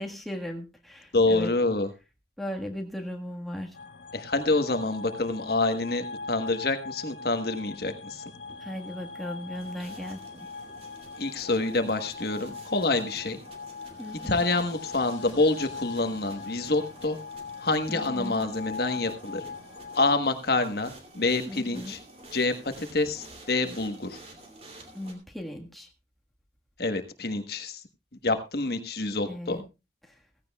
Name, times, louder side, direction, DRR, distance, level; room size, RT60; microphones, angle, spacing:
voice 1, 0.0-1.5 2.4-3.8 8.6-10.5 14.0-14.4 17.9-18.4 21.4-21.9 24.9-25.9 29.2-29.6 30.0-30.2, left 1 dB, ahead, 1 dB, 1.5 m, -37 dB
voice 2, 1.1-1.9 4.1-8.2 11.2-13.4 14.2-17.2 17.6-19.4 19.9-22.0 22.3-24.2 26.8-27.8 28.2-29.6, left 2 dB, 55° left, 7 dB, 1.2 m, -27 dB
sound 1, 3.7-20.1, left 4 dB, 85° left, 1.1 m, -41 dB
sound 2, 8.3-25.1, right 1 dB, 35° right, 2.7 m, -50 dB
16.5 x 15.5 x 2.3 m, 0.27 s
head